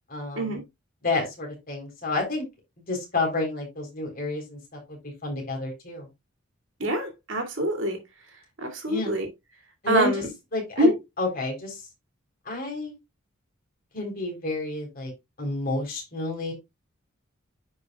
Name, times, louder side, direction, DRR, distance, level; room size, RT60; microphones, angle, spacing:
voice 1, 0.1-0.6 1.0-2.4 2.9-4.6 4.9-6.1 8.9-9.1 9.8-10.2 10.5-10.9 11.2-11.8 12.5-12.9 13.9-15.1 15.4-16.5, left 2 dB, 45° left, 3.7 m, -30 dB
voice 2, 6.8-8.0 8.6-9.3 9.9-10.3 10.8-11.0, right 1 dB, 65° right, 2.4 m, -25 dB
9.8 x 5.3 x 2.3 m
head